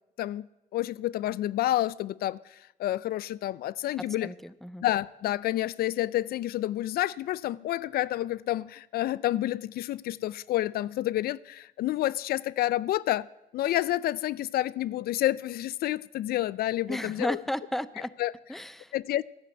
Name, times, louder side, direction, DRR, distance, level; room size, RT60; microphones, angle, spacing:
voice 1, 0.7-4.3 4.8-13.3 13.5-17.4 18.2-18.3 18.9-19.2, left 14 dB, 75° left, 0.4 m, -29 dB
voice 2, 4.2-4.8 16.9-18.1 18.5-18.9, left 1 dB, ahead, 0.6 m, -33 dB
13.0 x 10.5 x 7.8 m
cardioid pair, 100°, 16 cm